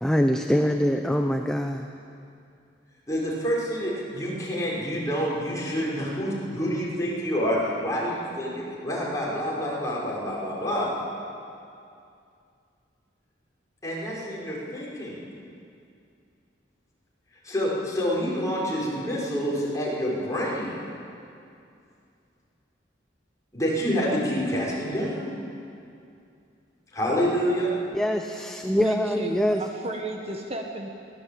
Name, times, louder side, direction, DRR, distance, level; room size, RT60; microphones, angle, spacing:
voice 1, 0.0-1.9 27.9-29.6, equal, 5° left, 4 dB, 0.8 m, -24 dB
voice 2, 3.1-10.9 13.8-15.2 17.4-20.8 23.5-25.4 26.9-27.8, equal, 20° left, -5 dB, 5.9 m, -27 dB
voice 3, 28.7-30.9, right 2 dB, 35° right, 2 dB, 1.5 m, -33 dB
22.5 x 17.5 x 8.8 m, 2.5 s
head